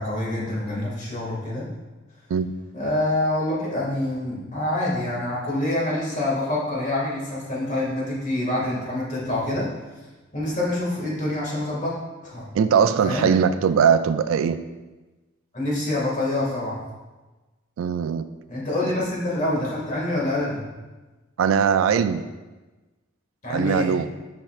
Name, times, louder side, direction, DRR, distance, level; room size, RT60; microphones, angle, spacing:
voice 1, 0.0-1.6 2.7-9.7 10.3-11.9 12.2-12.5 13.0-13.3 15.5-16.8 18.5-20.6 23.4-23.9, left 1 dB, 40° left, -5 dB, 1.9 m, -26 dB
voice 2, 12.5-14.6 17.8-18.3 21.4-22.2 23.5-24.1, right 7 dB, 80° right, 11 dB, 0.3 m, -20 dB
7.6 x 5.5 x 2.4 m, 1.2 s
head